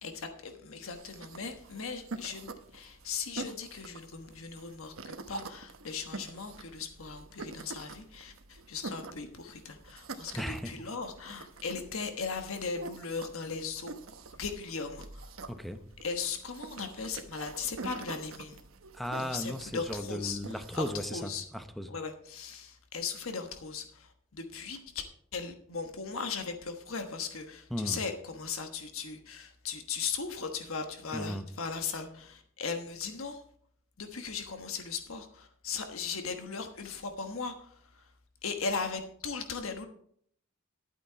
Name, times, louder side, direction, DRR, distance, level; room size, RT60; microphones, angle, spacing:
voice 1, 0.0-13.9 14.3-15.2 16.0-18.6 19.2-20.4 20.7-21.4 21.9-25.0 25.3-33.4 34.0-37.5 38.4-39.9, left 5 dB, 75° left, 6 dB, 1.3 m, -38 dB
sound 1, 0.9-20.9, right 3 dB, 75° right, 1.1 m, -46 dB
voice 2, 10.3-10.7 15.5-15.8 18.9-21.9 27.7-28.0 31.1-31.4, equal, ahead, 9 dB, 0.8 m, -36 dB
11.5 x 8.8 x 4.6 m, 0.63 s
head